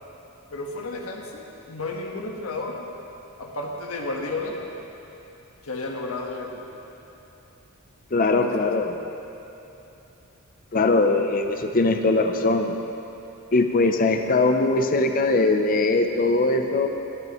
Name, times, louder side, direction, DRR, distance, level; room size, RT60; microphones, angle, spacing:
voice 1, 0.5-2.8 3.4-4.6 5.6-6.6 8.4-8.5, left 2 dB, 85° left, 0 dB, 1.4 m, -32 dB
voice 2, 8.1-9.0 10.7-12.7 13.5-16.9, left 3 dB, 40° left, 6 dB, 0.6 m, -21 dB
18.5 x 10.5 x 3.1 m, 2.9 s
head